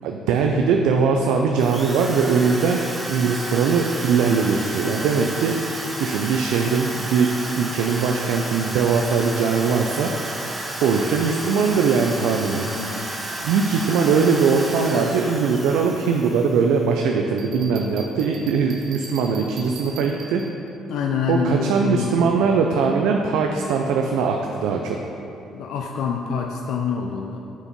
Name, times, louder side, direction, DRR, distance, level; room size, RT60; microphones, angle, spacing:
voice 1, 0.0-10.1 10.8-12.7 13.4-20.4 21.3-25.0, right 5 dB, 90° right, 2 dB, 0.4 m, -21 dB
Drill, 1.6-16.8, right 1 dB, 15° right, 0.8 m, -32 dB
voice 2, 12.6-13.1 20.9-22.4 25.5-27.4, left 6 dB, 75° left, 2 dB, 0.5 m, -26 dB
Bell, 17.4-20.7, right 3 dB, 55° right, 0.8 m, -41 dB
7.0 x 4.4 x 5.2 m, 2.7 s
cardioid pair, 110°, 0 cm